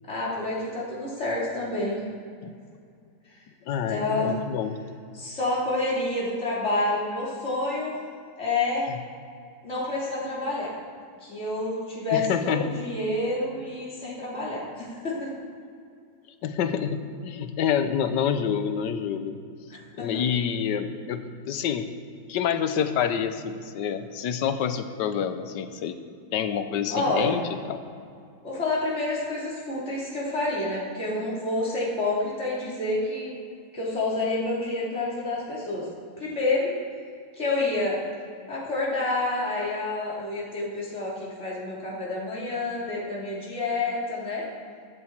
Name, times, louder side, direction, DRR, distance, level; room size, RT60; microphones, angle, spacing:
voice 1, 0.1-2.0 3.9-4.3 5.1-8.0 8.4-8.9 9.6-10.7 11.2-15.3 20.0-20.2 26.9-27.4 28.4-33.3 33.7-35.9 36.2-36.7 37.4-38.0 38.5-44.4, left 2 dB, 40° left, -6 dB, 3.2 m, -28 dB
voice 2, 3.7-4.8 12.1-12.7 16.4-19.3 19.9-21.8 22.3-25.9 26.3-27.4 27.7-27.8, left 8 dB, 85° left, 9 dB, 1.4 m, -27 dB
13.5 x 9.8 x 4.6 m, 2.3 s
omnidirectional pair, 1.8 m